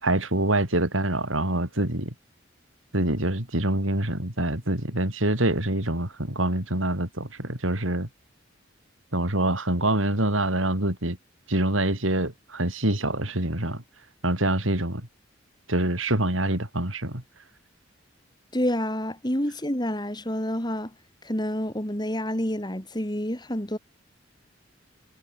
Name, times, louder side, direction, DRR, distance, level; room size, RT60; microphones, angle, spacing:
voice 1, 0.0-2.1 2.9-8.1 9.1-11.2 11.5-13.8 14.2-15.1 15.7-17.2, right 1 dB, 85° right, 6.8 m, -25 dB
voice 2, 18.5-20.9 21.2-23.8, equal, 20° left, 4.5 m, -28 dB
head